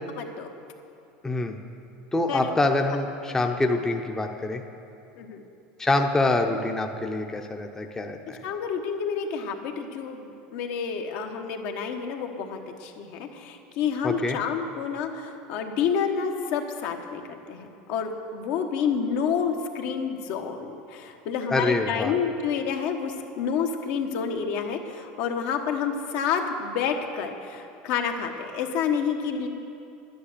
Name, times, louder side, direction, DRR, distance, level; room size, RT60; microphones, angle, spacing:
voice 1, 0.2-0.5 2.3-2.5 5.2-5.4 8.4-17.2 17.5-29.5, left 6 dB, 65° left, 4 dB, 1.2 m, -29 dB
voice 2, 1.2-1.6 2.1-4.6 5.8-8.4 14.0-14.4 21.5-22.1, left 2 dB, 10° left, 4 dB, 0.7 m, -25 dB
11.0 x 10.0 x 6.7 m, 2.6 s
supercardioid pair, 125°, 4 cm